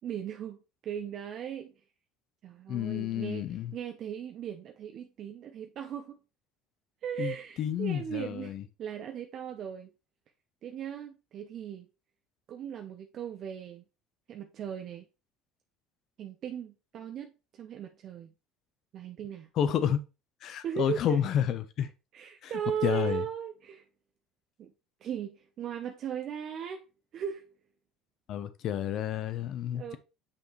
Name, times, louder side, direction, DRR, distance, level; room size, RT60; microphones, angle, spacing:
voice 1, 0.0-1.7 2.4-3.5 3.7-6.2 7.0-9.9 10.6-11.9 12.5-13.8 14.3-15.1 16.2-18.3 18.9-19.5 20.6-21.2 22.1-23.9 24.6-24.7 25.0-26.8 27.1-27.5 29.7-30.0, right 8 dB, 50° right, 0.8 m, -37 dB
voice 2, 2.7-3.7 7.2-7.3 7.6-8.6 19.6-20.0 20.4-21.9 22.4-22.5 22.8-23.2 28.3-30.0, left 10 dB, 55° left, 0.8 m, -30 dB
6.9 x 5.4 x 3.2 m
cardioid pair, 115°, 0 cm